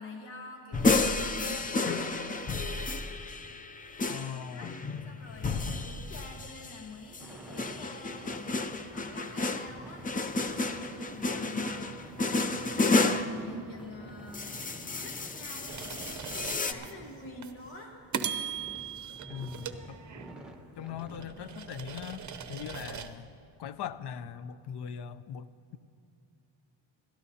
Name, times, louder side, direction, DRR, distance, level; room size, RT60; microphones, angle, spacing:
voice 1, 0.0-2.1 4.1-4.7 5.0-12.4 12.9-14.6 15.0-17.9, left 2 dB, 75° left, 0 dB, 1.6 m, -47 dB
sound 1, 0.7-6.8 7.1-13.4 14.3-16.7, left 3 dB, 20° left, 0.4 m, -31 dB
voice 2, 4.1-4.8 19.3-20.0 20.8-23.3 23.6-25.8, left 8 dB, 55° left, 14 dB, 0.6 m, -40 dB
sound 2, 7.2-22.8, right 1 dB, ahead, 1.2 m, -49 dB
sound 3, 15.7-16.9 17.4-17.6 18.1-20.5 21.0-23.1, right 8 dB, 40° right, 0.7 m, -39 dB
28.5 x 13.0 x 2.8 m, 2.6 s
cardioid pair, 130°, 47 cm